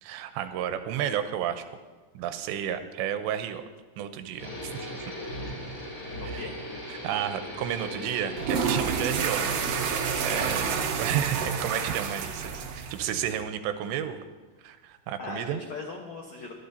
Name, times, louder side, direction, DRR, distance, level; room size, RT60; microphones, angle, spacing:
voice 1, 0.0-1.6 2.1-3.6 4.0-5.1 6.2-6.5 6.9-9.6 9.9-14.3 14.6-15.6, right 10 dB, 90° right, 9 dB, 2.9 m, -32 dB
sound 1, 4.4-10.8, equal, 25° left, 2.7 m, -38 dB
voice 2, 6.2-6.6 10.3-10.7 15.2-16.5, left 3 dB, 90° left, 0 dB, 1.5 m, -39 dB
sound 2, 8.3-13.4, right 6 dB, 70° right, 2.2 m, -29 dB
22.0 x 12.0 x 2.7 m, 1.3 s
omnidirectional pair, 5.1 m